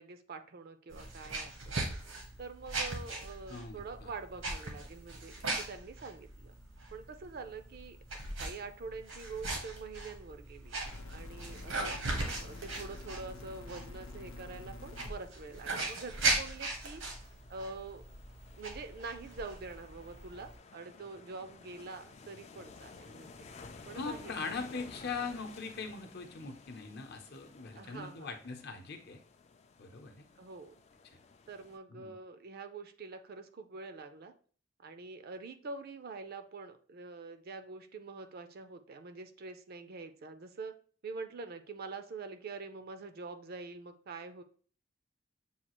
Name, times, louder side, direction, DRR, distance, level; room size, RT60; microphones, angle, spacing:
voice 1, 0.0-1.8 2.4-6.5 6.9-8.0 8.4-10.8 11.1-12.0 12.3-17.0 17.5-18.0 18.6-23.5 23.9-24.9 27.7-28.3 30.4-30.8 31.5-34.3 34.8-40.7 41.0-44.4, right 4 dB, 50° right, 9 dB, 0.5 m, -45 dB
sound 1, 0.9-20.6, right 2 dB, 85° right, 1.2 m, -39 dB
voice 2, 3.5-4.1 23.9-29.2 29.8-30.2 31.1-31.2 31.9-32.1, left 4 dB, 55° left, 4 dB, 0.7 m, -41 dB
sound 2, 10.9-15.1 16.0-16.1, left 2 dB, 85° left, 0.7 m, -47 dB
sound 3, 14.8-31.8, left 4 dB, 35° left, 0.4 m, -55 dB
7.0 x 2.4 x 3.0 m, 0.43 s
head